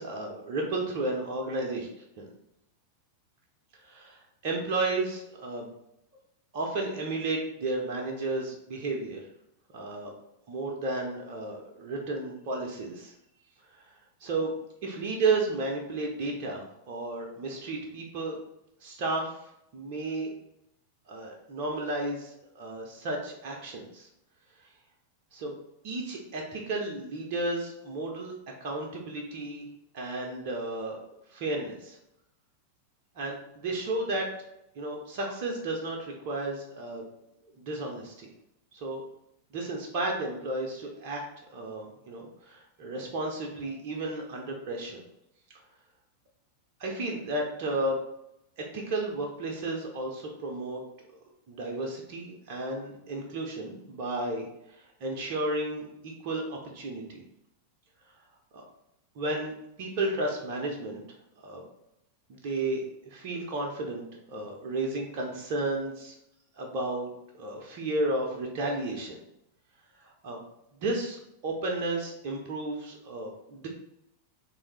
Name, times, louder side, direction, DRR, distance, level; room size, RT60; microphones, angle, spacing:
voice 1, 0.0-1.9 2.2-2.3 3.8-4.2 4.4-5.7 6.5-9.2 9.7-10.1 10.5-13.1 13.7-13.8 14.2-14.5 14.8-18.4 18.8-19.3 19.7-20.3 21.1-24.1 25.3-25.5 25.8-28.3 28.6-29.6 29.9-31.0 31.3-32.0 33.2-34.3 34.7-37.0 37.6-38.3 38.8-39.0 39.5-41.2 41.5-45.0 46.8-48.0 48.6-50.8 51.5-54.5 55.0-57.2 58.5-58.6 59.2-61.0 61.4-61.6 62.3-66.1 66.6-67.1 67.4-69.2 70.2-70.4 70.8-73.7, right 2 dB, 45° right, 1 dB, 0.7 m, -33 dB
3.5 x 2.7 x 3.2 m, 0.81 s
figure-of-eight pair, 90°, 0 cm